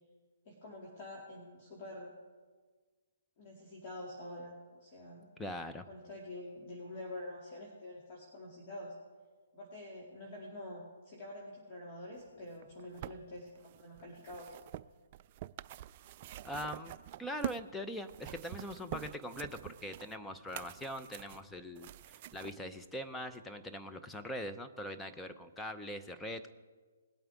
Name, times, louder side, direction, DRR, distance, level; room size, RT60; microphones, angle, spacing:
voice 1, 0.5-2.1 3.4-5.3 5.9-8.9 9.5-14.5, left 1 dB, 35° left, -4 dB, 2.6 m, -47 dB
voice 2, 5.4-5.9 16.4-26.5, equal, 5° left, 6 dB, 0.7 m, -42 dB
sound 1, 12.5-17.7 18.0-22.5 23.3-23.4, right 13 dB, 40° right, 0.3 m, -46 dB
20.0 x 8.7 x 3.6 m, 1.4 s
hypercardioid pair, 145°, 0 cm